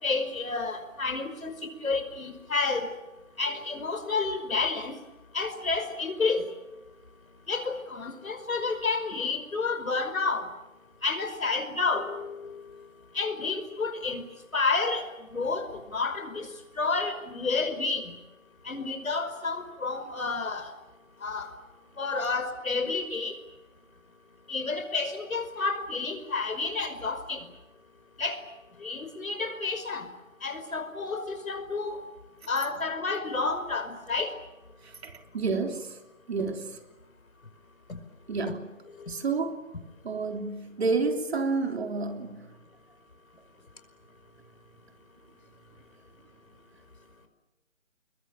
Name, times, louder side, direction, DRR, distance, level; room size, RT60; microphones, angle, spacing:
voice 1, 0.0-1.5 1.8-2.9 3.4-4.9 5.3-6.4 7.5-10.5 11.0-12.3 13.2-14.2 14.5-15.0 15.3-15.7 15.9-16.5 16.8-18.1 18.7-20.7 21.2-21.5 22.0-23.4 24.5-27.4 28.2-28.4 28.8-30.1 30.4-32.0 32.5-34.3, left 4 dB, 85° left, 5.4 m, -30 dB
voice 2, 34.8-36.0 36.3-36.8 38.3-38.7 39.1-39.7 40.0-42.5, right 4 dB, 50° right, 3.3 m, -30 dB
29.5 x 21.5 x 9.0 m
hypercardioid pair, 165°, 40 cm